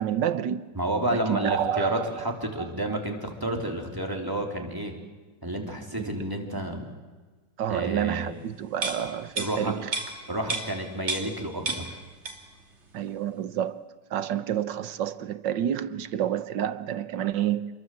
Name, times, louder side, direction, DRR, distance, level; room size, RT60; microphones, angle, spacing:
voice 1, 0.0-0.7 1.1-2.1 2.6-2.7 6.0-6.2 7.6-9.9 12.9-17.7, right 10 dB, 85° right, 1.7 m, -29 dB
voice 2, 0.7-4.9 5.4-6.8 7.7-8.3 9.4-9.7 10.3-12.0, right 1 dB, 10° right, 3.7 m, -30 dB
sound 1, 8.8-11.4 11.7-12.6 12.9-13.1, right 3 dB, 40° right, 3.3 m, -33 dB
28.5 x 22.0 x 7.9 m
omnidirectional pair, 1.9 m